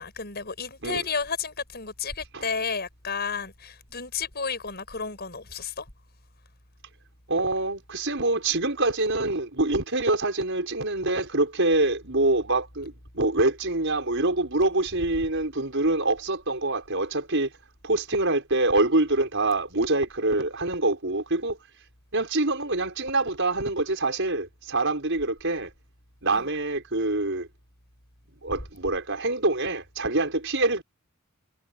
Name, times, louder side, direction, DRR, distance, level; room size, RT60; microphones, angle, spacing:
voice 1, 0.0-5.9 26.3-26.4, left 5 dB, 50° left, 7.4 m, -32 dB
voice 2, 7.3-17.5 17.8-21.6 22.1-25.7 26.2-27.5 28.4-30.8, right 2 dB, 60° right, 6.5 m, -25 dB
head